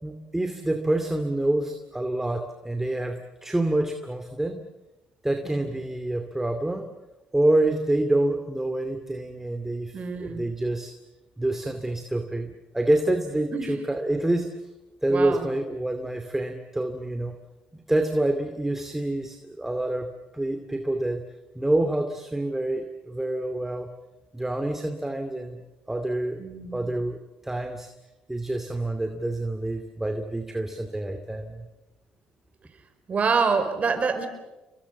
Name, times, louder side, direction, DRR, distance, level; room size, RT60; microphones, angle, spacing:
voice 1, 0.0-4.6 5.2-6.9 7.3-10.9 11.4-14.5 15.0-17.4 17.7-20.1 20.3-21.2 21.5-23.9 24.3-25.6 25.9-26.4 26.7-27.2 27.4-27.9 28.3-31.7, right 1 dB, 10° right, 6 dB, 2.5 m, -27 dB
voice 2, 9.9-10.5 13.5-13.8 15.1-15.5 26.4-27.0 33.1-34.3, right 5 dB, 40° right, 8 dB, 4.9 m, -26 dB
30.0 x 23.0 x 7.3 m, 1.0 s
supercardioid pair, 75°, 3 cm